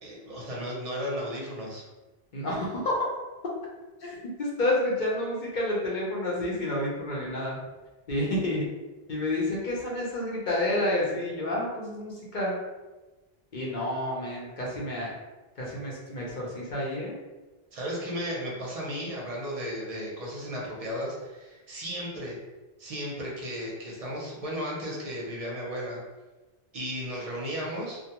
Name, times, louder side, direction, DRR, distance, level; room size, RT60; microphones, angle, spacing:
voice 1, 0.0-1.8 17.7-22.4 22.8-26.0 26.7-28.0, equal, 40° right, -4 dB, 0.7 m, -34 dB
voice 2, 2.3-2.9 4.0-7.6 8.1-8.6 9.1-12.6 13.5-15.1 15.6-17.2, left 1 dB, 50° left, -4 dB, 0.8 m, -29 dB
2.2 x 2.2 x 2.8 m, 1.2 s
omnidirectional pair, 1.1 m